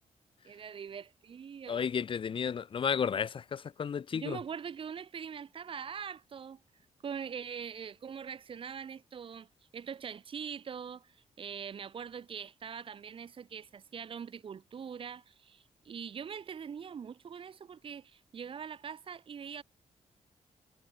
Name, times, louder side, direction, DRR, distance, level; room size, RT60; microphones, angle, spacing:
voice 1, 0.4-1.9 4.1-6.6 7.0-19.6, right 7 dB, 45° right, 3.8 m, -43 dB
voice 2, 1.7-4.4, left 7 dB, 45° left, 3.6 m, -32 dB
wide cardioid pair, 160°, 12 cm